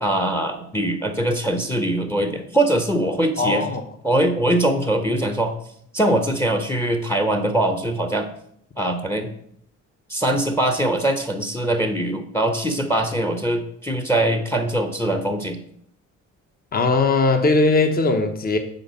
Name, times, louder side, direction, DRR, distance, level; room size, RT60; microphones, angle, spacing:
voice 1, 0.0-3.6 4.0-5.5 5.9-8.3 8.8-9.3 10.1-15.6, right 1 dB, 10° left, 6 dB, 0.8 m, -22 dB
voice 2, 3.4-3.8 16.7-18.6, left 3 dB, 30° left, 6 dB, 1.0 m, -19 dB
7.8 x 4.4 x 5.6 m, 0.69 s
cardioid pair, 90°, 30 cm